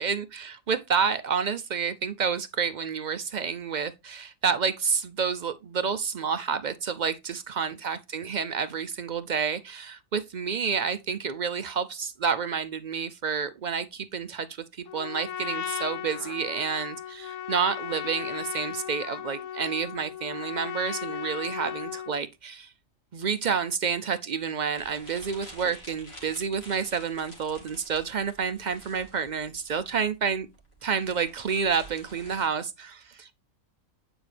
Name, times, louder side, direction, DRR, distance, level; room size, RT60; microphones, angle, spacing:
voice 1, 0.0-14.5 14.7-22.7 23.1-30.5 30.8-33.3, right 6 dB, 60° right, 0.4 m, -29 dB
Trumpet, 14.9-22.2, left 10 dB, 70° left, 1.0 m, -36 dB
sound 1, 24.7-32.5, equal, 50° left, 2.7 m, -49 dB
9.0 x 4.7 x 3.3 m
omnidirectional pair, 1.4 m